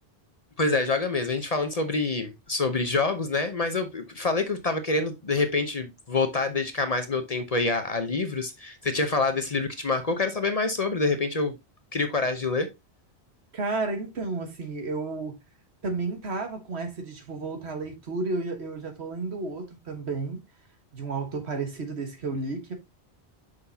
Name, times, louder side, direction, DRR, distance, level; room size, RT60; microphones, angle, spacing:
voice 1, 0.6-11.6 11.9-12.7, left 3 dB, 40° left, 0.8 m, -26 dB
voice 2, 13.5-15.4 15.8-20.4 20.9-22.7, right 3 dB, 75° right, 1.7 m, -32 dB
6.3 x 5.8 x 2.7 m
omnidirectional pair, 1.1 m